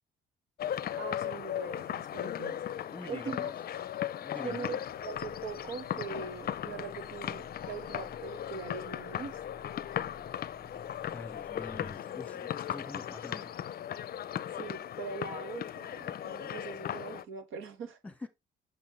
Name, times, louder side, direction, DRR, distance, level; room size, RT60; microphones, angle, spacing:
sound 1, 0.6-17.2, left 10 dB, 50° left, 0.5 m, -37 dB
voice 1, 1.0-2.6 3.1-3.4 4.4-9.4 14.5-18.0, right 5 dB, 90° right, 1.6 m, -42 dB
voice 2, 2.9-3.5 4.2-4.7 11.1-13.5 18.0-18.3, left 2 dB, 5° left, 1.5 m, -45 dB
sound 2, 4.9-12.0, left 3 dB, 45° right, 2.3 m, -54 dB
7.1 x 5.5 x 3.2 m
cardioid pair, 90°, 20 cm